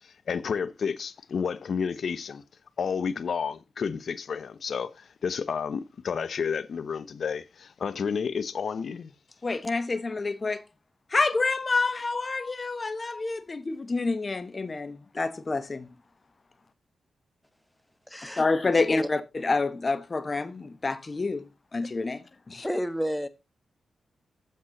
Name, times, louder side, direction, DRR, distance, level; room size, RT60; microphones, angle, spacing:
voice 1, 0.3-2.4 2.8-9.1, left 6 dB, 65° left, 0.9 m, -31 dB
voice 2, 9.4-10.6 11.1-15.9 18.4-22.6, left 3 dB, 40° left, 1.1 m, -28 dB
voice 3, 18.1-18.4 18.7-19.1 22.6-23.3, equal, 5° left, 1.3 m, -31 dB
9.2 x 7.5 x 3.9 m
supercardioid pair, 45°, 0 cm